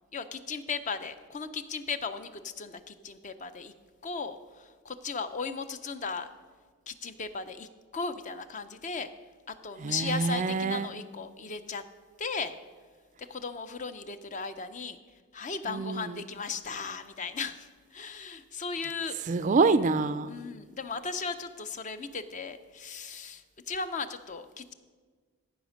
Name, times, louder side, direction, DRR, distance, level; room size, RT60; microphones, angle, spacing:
voice 1, 0.1-3.7 4.0-6.3 6.9-9.1 9.5-11.8 12.2-12.5 13.2-15.0 15.3-19.2 20.3-24.7, left 4 dB, 35° left, 11 dB, 0.5 m, -36 dB
voice 2, 9.8-10.9 15.7-16.2 19.3-20.3, right 4 dB, 35° right, 14 dB, 0.3 m, -26 dB
14.5 x 5.0 x 6.3 m, 1.5 s
head